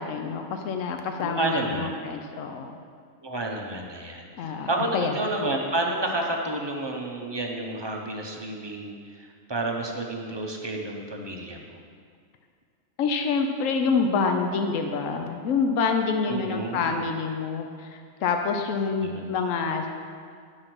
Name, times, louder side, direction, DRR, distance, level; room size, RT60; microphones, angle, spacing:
voice 1, 0.0-2.8 4.4-5.1 13.0-19.9, left 5 dB, 75° left, 5 dB, 1.1 m, -27 dB
voice 2, 1.2-1.9 3.2-11.8 16.3-17.0 19.0-19.3, right 2 dB, 25° right, 0 dB, 0.7 m, -30 dB
9.7 x 4.8 x 6.0 m, 2.1 s
omnidirectional pair, 1.4 m